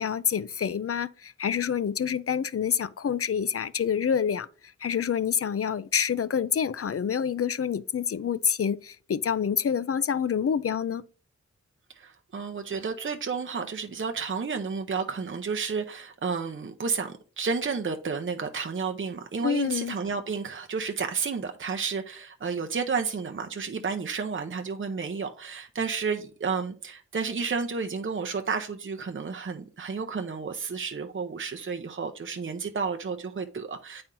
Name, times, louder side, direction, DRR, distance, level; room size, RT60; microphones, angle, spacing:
voice 1, 0.0-4.5 4.8-11.0 19.4-19.9, left 7 dB, 50° left, 0.5 m, -27 dB
voice 2, 11.9-34.0, right 5 dB, 40° right, 0.7 m, -31 dB
8.7 x 4.3 x 3.7 m
cardioid pair, 50°, 30 cm